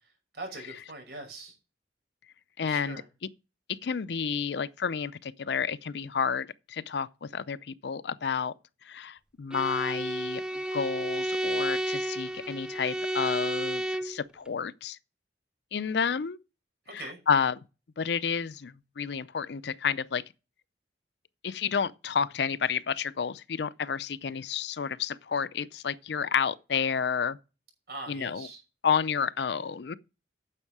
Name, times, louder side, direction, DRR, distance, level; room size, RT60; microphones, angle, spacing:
voice 1, 0.3-1.5 2.6-3.1 16.9-17.2 27.9-28.6, right 2 dB, 60° right, 6.1 m, -42 dB
voice 2, 2.6-3.0 3.7-8.5 8.8-10.4 10.7-15.0 15.7-16.4 16.9-17.6 18.0-20.2 21.4-27.4 28.1-28.5 28.8-29.9, left 6 dB, 70° left, 0.5 m, -30 dB
Bowed string instrument, 9.5-14.2, right 1 dB, 5° right, 0.4 m, -31 dB
9.9 x 7.2 x 4.8 m
head